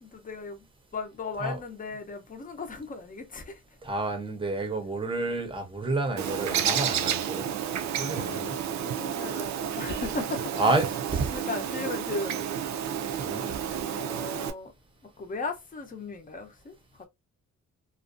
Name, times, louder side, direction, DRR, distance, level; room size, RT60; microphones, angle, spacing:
voice 1, 0.0-0.7 0.9-3.6 8.2-10.7 11.3-12.4 13.9-14.7 15.0-17.1, left 3 dB, 25° left, 0.6 m, -37 dB
voice 2, 3.8-7.5 8.0-8.5 10.6-11.3 13.2-13.4, right 2 dB, 15° right, 0.7 m, -29 dB
Bird, 6.2-14.5, right 9 dB, 65° right, 0.5 m, -31 dB
2.4 x 2.2 x 2.5 m
wide cardioid pair, 140°, 31 cm